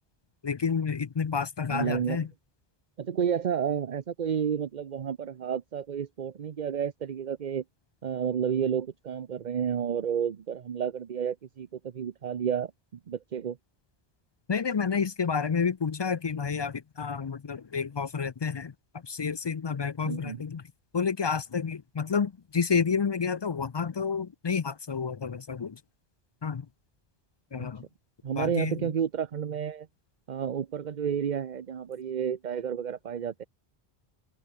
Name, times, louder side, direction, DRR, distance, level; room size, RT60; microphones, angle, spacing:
voice 1, 0.4-2.3 14.5-20.6 20.9-25.8 26.4-26.7 27.5-27.9 28.4-28.9, left 6 dB, 45° left, 0.3 m, -30 dB
voice 2, 1.7-2.3 3.0-7.6 8.0-12.7 13.1-13.6 20.1-20.4 27.6-27.7 28.2-29.9 30.3-33.5, right 8 dB, 50° right, 0.8 m, -31 dB
open air
omnidirectional pair, 1.1 m